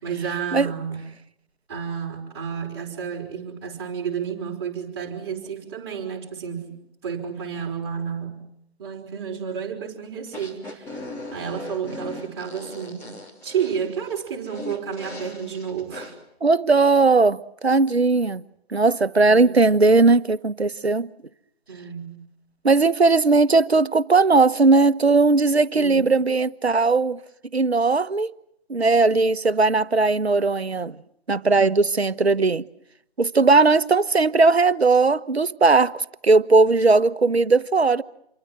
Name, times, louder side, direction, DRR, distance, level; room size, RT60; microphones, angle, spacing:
voice 1, 0.0-1.0 1.7-6.8 7.0-8.4 8.8-11.0 11.3-13.1 13.4-16.2 19.3-19.6 21.7-22.2 25.7-26.1, right 7 dB, 25° right, 5.3 m, -31 dB
sound 1, 10.3-16.1, left 2 dB, 10° left, 2.9 m, -38 dB
voice 2, 16.4-18.4 18.7-21.1 22.6-27.2 27.5-28.3 28.7-31.0 31.3-32.6 33.2-38.0, right 3 dB, 75° right, 1.2 m, -18 dB
27.5 x 23.5 x 7.6 m
figure-of-eight pair, 155°, 32 cm